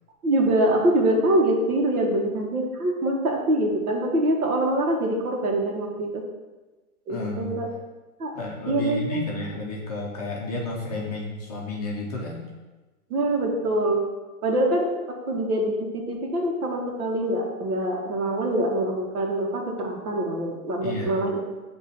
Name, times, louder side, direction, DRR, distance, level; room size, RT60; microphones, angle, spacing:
voice 1, 0.2-6.2 7.1-7.7 8.2-8.3 8.7-9.3 13.1-14.0 14.4-14.9 15.3-21.4, right 1 dB, 70° right, 0 dB, 1.5 m, -24 dB
voice 2, 7.1-7.6 8.3-12.4 20.8-21.2, left 2 dB, 25° left, -3 dB, 0.6 m, -31 dB
8.2 x 3.0 x 4.1 m, 1.2 s
hypercardioid pair, 165°, 45 cm